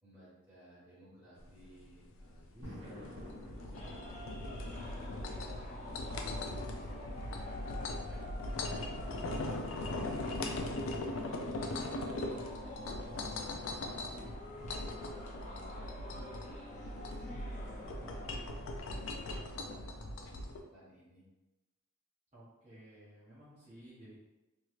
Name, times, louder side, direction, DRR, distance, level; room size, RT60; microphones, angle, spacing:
voice 1, 0.0-3.1 3.5-5.0 5.5-5.8 6.1-10.2 10.7-13.6 13.9-14.4 15.3-18.3 18.8-20.4 20.7-21.3, equal, 5° right, -11 dB, 1.5 m, -57 dB
sound 1, 1.4-20.6, left 2 dB, 65° left, 0.4 m, -40 dB
sound 2, 2.6-15.5, equal, 60° right, 1.1 m, -57 dB
sound 3, 3.7-19.5, left 1 dB, 35° left, 0.7 m, -49 dB
voice 2, 14.4-15.1 22.3-24.2, right 1 dB, 30° right, -12 dB, 0.8 m, -56 dB
3.0 x 2.9 x 2.4 m, 1.0 s
head